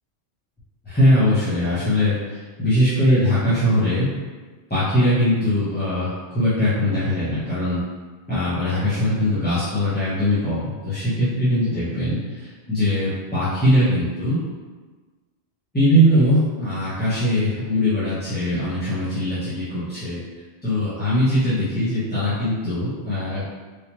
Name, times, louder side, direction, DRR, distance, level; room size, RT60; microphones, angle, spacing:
voice 1, 0.8-4.1 4.7-7.8 8.3-14.4 15.7-20.2 20.6-23.5, equal, 10° left, -13 dB, 0.7 m, -21 dB
3.4 x 2.8 x 2.9 m, 1.4 s
omnidirectional pair, 1.2 m